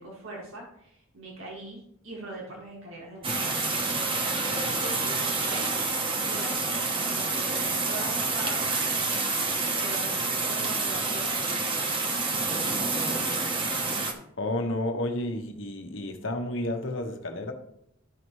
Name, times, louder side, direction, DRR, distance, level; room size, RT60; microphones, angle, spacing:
voice 1, 0.0-3.6 4.5-5.7 6.2-6.6 7.0-8.6 9.7-11.9, right 1 dB, 75° right, 2.1 m, -41 dB
sound 1, 3.2-14.1, right 3 dB, 25° right, 0.9 m, -28 dB
voice 2, 14.4-17.5, left 1 dB, 65° left, 1.1 m, -31 dB
13.0 x 5.5 x 3.1 m
head